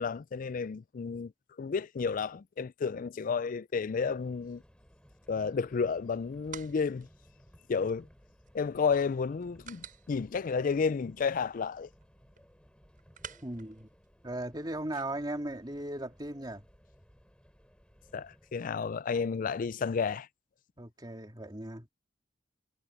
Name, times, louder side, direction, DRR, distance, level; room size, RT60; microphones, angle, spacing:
voice 1, 0.0-1.3 1.6-4.6 5.3-7.1 7.7-8.1 8.5-11.9 18.1-20.3, left 5 dB, 45° left, 0.4 m, -31 dB
Subway metro underground, 3.8-18.6, equal, 5° left, 6.4 m, -61 dB
sound 1, 5.9-14.8, right 7 dB, 45° right, 7.3 m, -54 dB
voice 2, 13.4-13.9 14.2-16.6 20.8-21.9, right 1 dB, 20° right, 2.7 m, -37 dB
head